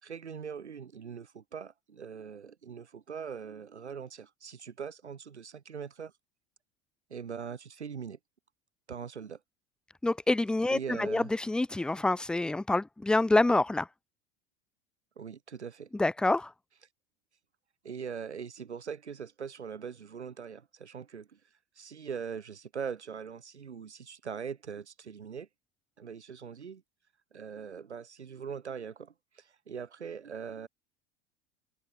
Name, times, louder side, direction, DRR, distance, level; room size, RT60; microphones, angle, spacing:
voice 1, 0.0-6.1 7.1-8.2 8.9-9.4 10.7-11.3 15.2-15.9 17.8-21.4 21.8-25.5 26.0-26.8 27.3-30.7, right 6 dB, 75° right, 5.9 m, -41 dB
voice 2, 10.0-13.9 15.9-16.5, left 2 dB, 5° left, 0.3 m, -27 dB
open air
figure-of-eight pair, 75°, 34 cm